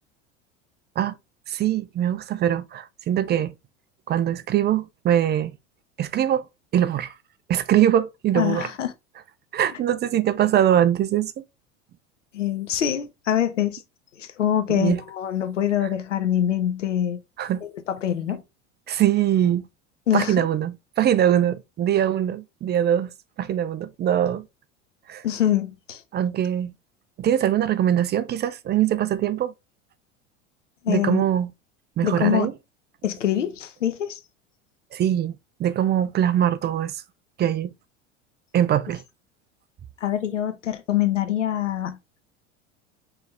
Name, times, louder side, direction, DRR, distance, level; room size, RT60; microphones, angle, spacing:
voice 1, 1.5-3.5 4.1-5.5 6.0-6.4 6.7-7.1 7.5-8.7 9.5-11.3 14.7-15.0 17.4-17.6 18.9-19.6 20.1-23.1 23.4-24.4 25.1-25.2 26.1-26.7 27.2-29.5 30.9-31.5 32.0-32.5 34.9-37.0 37.4-37.7 38.5-39.0, right 10 dB, 30° right, 0.6 m, -22 dB
voice 2, 8.3-8.9 12.3-13.8 14.2-17.2 17.6-18.4 20.1-20.3 25.2-26.0 30.8-31.2 32.0-32.5 33.0-34.2 40.0-42.2, left 11 dB, 90° left, 0.8 m, -24 dB
4.7 x 3.4 x 3.3 m
hypercardioid pair, 85°, 36 cm